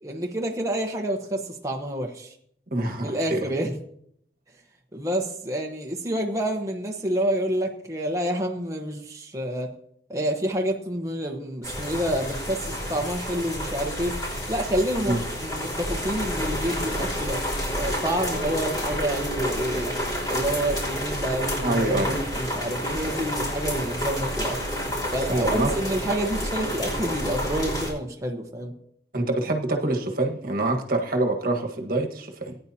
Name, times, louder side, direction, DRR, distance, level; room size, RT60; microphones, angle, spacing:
voice 1, 0.0-2.3 3.0-3.8 4.9-9.7 10.1-14.2 14.5-17.4 17.8-20.0 20.3-24.6 25.1-28.7, right 1 dB, 20° right, 0 dB, 1.0 m, -28 dB
voice 2, 2.7-3.4 15.0-15.2 21.6-22.2 25.3-25.7 29.1-32.6, right 2 dB, 55° right, 3 dB, 1.6 m, -25 dB
sound 1, 11.6-27.9, equal, 25° left, 5.2 m, -29 dB
19.0 x 9.8 x 2.8 m, 0.68 s
head